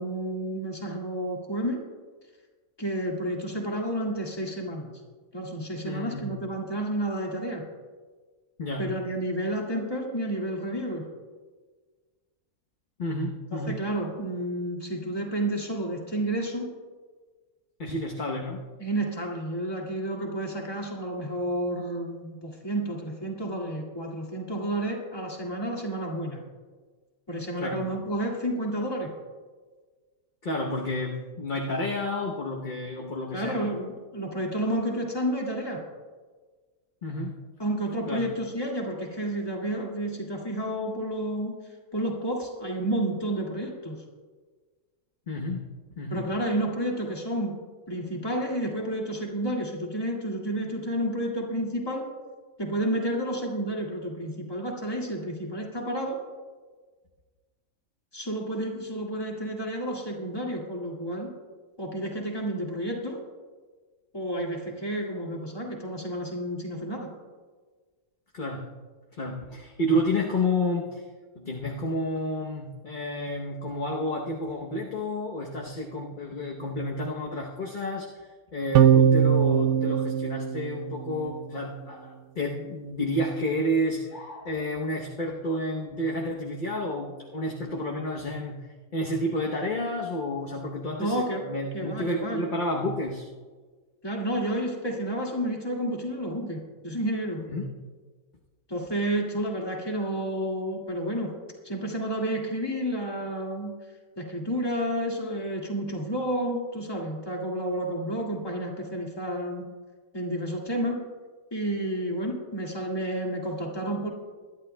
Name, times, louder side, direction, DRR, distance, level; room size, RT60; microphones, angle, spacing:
voice 1, 0.0-1.8 2.8-4.9 5.3-7.6 8.8-11.1 13.7-16.7 18.8-26.4 27.3-29.1 33.3-35.8 37.6-41.6 41.9-44.0 46.1-47.6 47.9-52.1 52.6-56.2 58.1-61.3 61.8-63.2 64.1-67.1 91.0-91.4 91.7-92.5 94.0-97.4 98.7-101.3 101.6-103.8 104.2-109.7 110.1-111.0 111.5-114.1, right 1 dB, 15° left, -1 dB, 1.9 m, -30 dB
voice 2, 5.8-6.3 8.6-8.9 13.0-13.7 17.8-18.6 27.6-27.9 30.4-33.7 37.0-37.4 38.1-38.2 45.3-45.7 46.0-46.2 68.3-68.7 69.1-71.0 71.3-78.3 78.5-88.7 88.9-93.3 97.5-97.7, left 1 dB, 40° left, -1 dB, 0.9 m, -30 dB
sound 1, 78.7-81.3, right 9 dB, 65° right, 0.8 m, -21 dB
22.0 x 11.5 x 2.2 m, 1.4 s
omnidirectional pair, 1.6 m